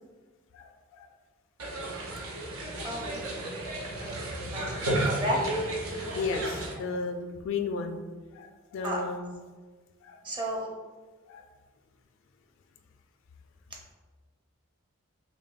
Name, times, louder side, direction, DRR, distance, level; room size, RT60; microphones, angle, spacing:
voice 1, 0.5-1.1 4.0-4.2 4.7-4.8 6.1-8.0 8.4-9.3 10.0-10.2 11.3-11.4, left 4 dB, 65° left, 6 dB, 0.3 m, -34 dB
sound 1, 1.6-6.7, right 1 dB, 85° right, 0.7 m, -33 dB
voice 2, 5.0-5.4 8.8-9.0 10.2-10.7, equal, 25° right, -2 dB, 0.7 m, -31 dB
5.7 x 2.2 x 2.4 m, 1.4 s
head